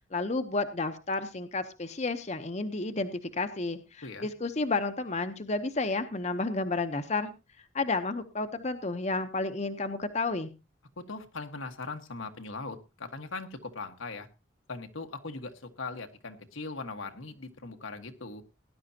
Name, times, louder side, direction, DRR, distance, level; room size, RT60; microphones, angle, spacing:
voice 1, 0.1-7.3 7.7-10.5, left 3 dB, 35° left, 8 dB, 0.9 m, -31 dB
voice 2, 11.0-14.3 14.7-18.4, left 3 dB, 85° left, 5 dB, 1.5 m, -40 dB
18.5 x 11.0 x 2.9 m, 0.27 s
head